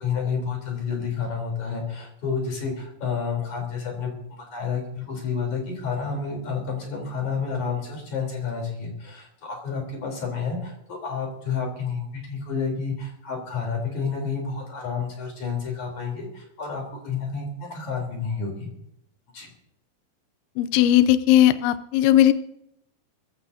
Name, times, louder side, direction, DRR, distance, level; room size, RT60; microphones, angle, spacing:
voice 1, 0.0-18.7 19.3-19.5, left 5 dB, 40° left, 0 dB, 4.8 m, -30 dB
voice 2, 20.6-22.3, left 12 dB, 85° left, 13 dB, 2.2 m, -17 dB
21.5 x 16.0 x 2.8 m, 0.77 s
omnidirectional pair, 5.5 m